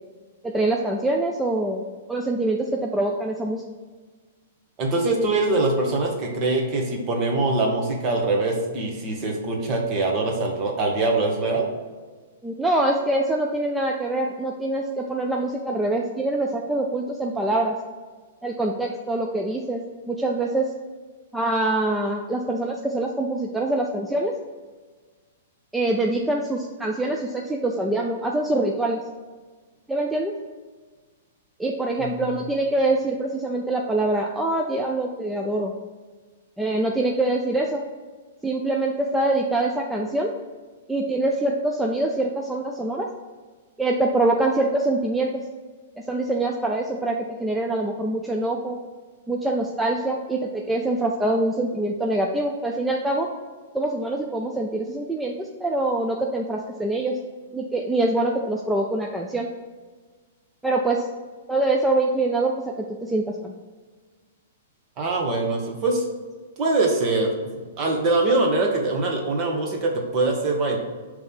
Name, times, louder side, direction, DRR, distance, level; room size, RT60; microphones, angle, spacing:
voice 1, 0.4-1.8 2.1-3.6 12.4-17.7 18.4-19.8 20.1-20.6 21.3-24.3 25.7-29.0 29.9-30.3 31.6-35.7 36.6-37.8 38.4-40.3 40.9-43.1 43.8-45.3 46.1-48.8 49.3-53.3 53.7-57.1 57.5-59.5 60.6-61.0 61.5-62.5 63.0-63.5, right 2 dB, 5° right, 0 dB, 0.4 m, -24 dB
voice 2, 4.8-11.7 32.0-32.2 65.0-66.0 66.6-67.5 67.8-70.8, right 2 dB, 35° right, 1 dB, 1.3 m, -23 dB
5.3 x 3.3 x 5.5 m, 1.4 s
hypercardioid pair, 130°, 0 cm